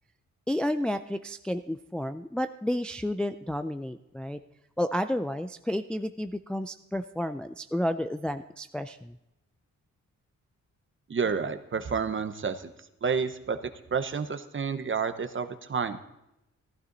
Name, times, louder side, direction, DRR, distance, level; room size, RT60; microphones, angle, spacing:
voice 1, 0.5-4.4 4.8-9.2, left 1 dB, 5° left, 9 dB, 0.3 m, -31 dB
voice 2, 11.1-12.6 13.0-13.6 13.9-16.0, right 6 dB, 40° right, 10 dB, 0.9 m, -29 dB
14.5 x 12.5 x 4.0 m, 0.87 s
wide cardioid pair, 110°, 31 cm